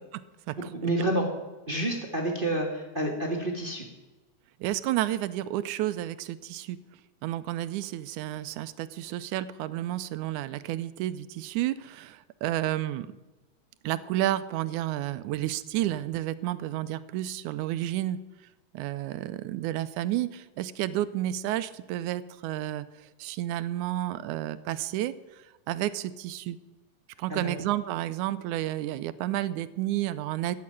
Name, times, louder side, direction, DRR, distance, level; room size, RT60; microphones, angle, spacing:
voice 1, 0.8-1.3 1.7-3.8 27.3-27.5, right 1 dB, 20° right, 2 dB, 1.5 m, -28 dB
voice 2, 4.6-6.8 7.2-13.1 13.8-18.2 18.7-22.9 23.2-25.1 25.7-26.6 27.2-30.6, right 14 dB, 90° right, 14 dB, 2.1 m, -31 dB
14.5 x 7.5 x 9.9 m, 1.1 s
omnidirectional pair, 3.5 m